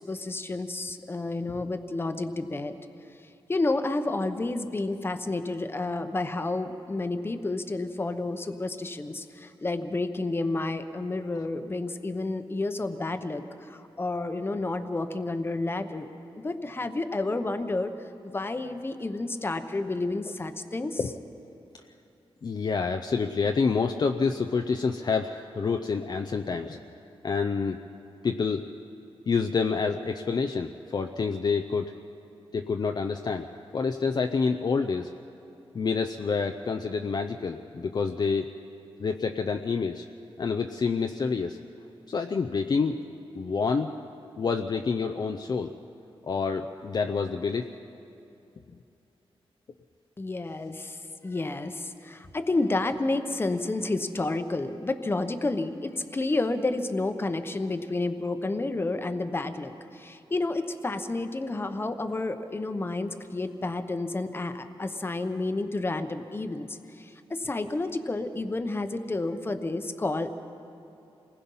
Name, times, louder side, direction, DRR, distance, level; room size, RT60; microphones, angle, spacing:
voice 1, 0.0-2.7 3.5-16.1 16.4-17.9 18.2-21.0 50.2-51.0 51.2-70.3, left 2 dB, 25° left, 9 dB, 0.9 m, -30 dB
voice 2, 22.4-26.8 27.2-27.8 28.2-28.7 29.3-31.9 32.5-35.1 35.7-38.5 39.0-40.0 40.4-41.6 42.1-43.0 43.3-43.9 44.4-45.7 46.3-47.7, left 5 dB, 45° left, 6 dB, 0.6 m, -28 dB
28.0 x 20.0 x 5.5 m, 2.7 s
wide cardioid pair, 155°, 10 cm